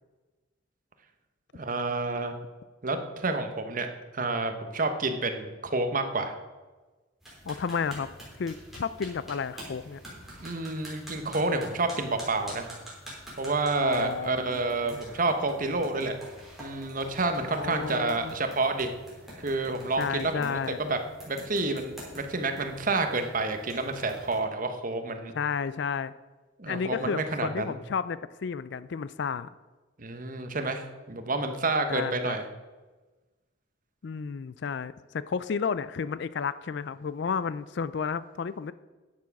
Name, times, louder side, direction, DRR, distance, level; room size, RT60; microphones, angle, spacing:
voice 1, 1.5-2.3 2.8-3.9 4.1-6.3 10.4-12.7 13.4-16.2 16.6-18.9 19.4-21.0 21.3-25.3 26.6-27.8 30.0-32.4, right 3 dB, 45° right, 7 dB, 1.0 m, -29 dB
sound 1, 7.2-24.4, right 1 dB, ahead, 3.6 m, -47 dB
voice 2, 7.4-8.1 8.4-10.0 13.8-14.6 14.9-15.0 17.5-18.3 20.0-20.9 25.3-26.1 26.7-29.5 31.9-32.4 34.0-38.7, left 6 dB, 60° left, 16 dB, 0.4 m, -32 dB
10.5 x 7.3 x 6.0 m, 1.2 s
head